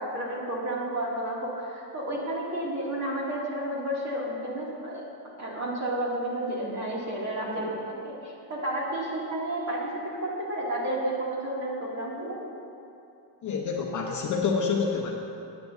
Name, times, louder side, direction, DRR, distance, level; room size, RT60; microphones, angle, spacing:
voice 1, 0.0-5.0 5.4-7.8 8.0-12.4, right 1 dB, 35° right, -4 dB, 2.5 m, -31 dB
voice 2, 13.4-15.2, left 5 dB, 35° left, 0 dB, 0.9 m, -27 dB
17.5 x 9.4 x 2.7 m, 2.7 s
cardioid pair, 150°, 50 cm